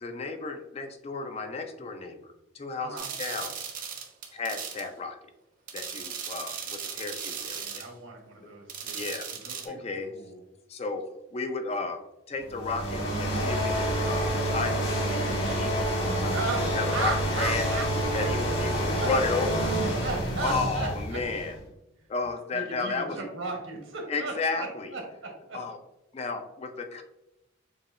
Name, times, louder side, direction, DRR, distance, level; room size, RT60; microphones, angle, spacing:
voice 1, 0.0-3.6 4.3-5.2 5.7-7.8 8.9-9.3 9.6-10.1 10.7-11.1 11.3-12.0 12.3-15.9 16.2-16.4 16.7-17.7 18.1-19.7 20.4-21.5 22.1-23.2 24.1-24.9 25.5-25.8 26.1-27.0, left 3 dB, 30° left, 6 dB, 0.4 m, -33 dB
sound 1, 3.0-4.9 5.7-7.9 8.7-9.7, right 7 dB, 40° right, 0.7 m, -37 dB
voice 2, 7.5-9.0 9.3-10.4 16.3-17.9 18.9-19.1 20.0-21.2 22.5-25.6, right 3 dB, 80° right, 1 dB, 1.2 m, -36 dB
sound 2, 12.4-21.6, right 1 dB, 60° left, 1.6 m, -28 dB
7.0 x 2.8 x 2.5 m, 0.91 s
head